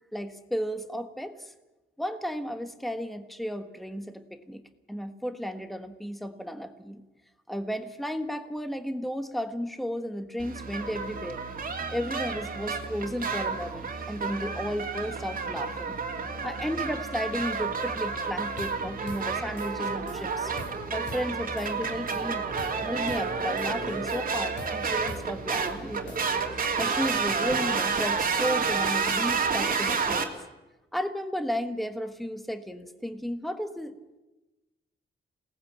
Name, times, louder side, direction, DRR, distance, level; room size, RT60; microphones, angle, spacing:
voice 1, 0.1-1.5 2.0-4.6 4.9-7.0 7.5-11.4 11.9-16.0 16.4-20.5 20.9-22.4 22.8-26.2 26.5-30.3 30.9-34.2, equal, ahead, 8 dB, 1.4 m, -34 dB
sound 1, 10.4-30.3, right 5 dB, 45° right, 2.8 m, -30 dB
sound 2, 18.6-18.8 19.1-19.3 19.6-20.2 20.6-20.8 21.1-21.3 21.6-22.2 22.6-22.8 23.1-23.3 23.6-24.3 24.6-24.8 25.1-25.3 25.6-26.5, left 2 dB, 80° left, 5.3 m, -45 dB
28.0 x 18.5 x 8.8 m, 1.1 s
wide cardioid pair, 140°, 19 cm